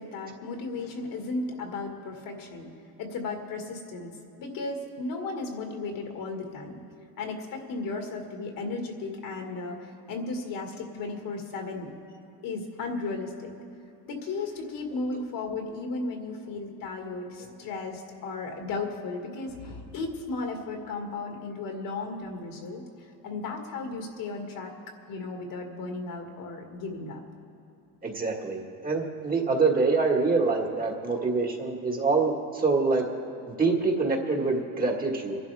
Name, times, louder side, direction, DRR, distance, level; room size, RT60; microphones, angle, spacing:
voice 1, 0.0-2.7 3.0-4.1 4.4-6.8 7.2-11.9 12.4-13.5 14.1-22.8 23.2-24.7 25.1-27.2, left 3 dB, 55° left, 2 dB, 2.1 m, -35 dB
voice 2, 28.0-33.0 33.5-35.4, right 4 dB, 20° right, 0 dB, 1.7 m, -25 dB
25.0 x 11.5 x 3.5 m, 2.7 s
cardioid pair, 130°, 39 cm